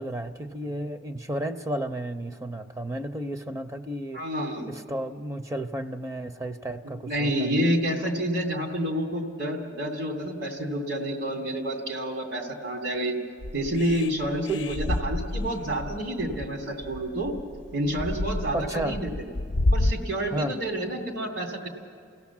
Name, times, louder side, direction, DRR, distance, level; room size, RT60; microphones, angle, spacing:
voice 1, 0.0-4.2 4.7-7.7 14.5-14.7 18.5-19.0 20.3-20.5, right 1 dB, 15° right, 8 dB, 0.5 m, -32 dB
voice 2, 4.1-4.8 6.8-13.1 13.5-17.3 17.7-19.1 19.7-21.7, right 1 dB, 80° right, 1 dB, 2.8 m, -29 dB
sound 1, 13.4-19.9, left 1 dB, 75° left, 0.5 m, -29 dB
29.0 x 16.5 x 7.2 m, 2.2 s
head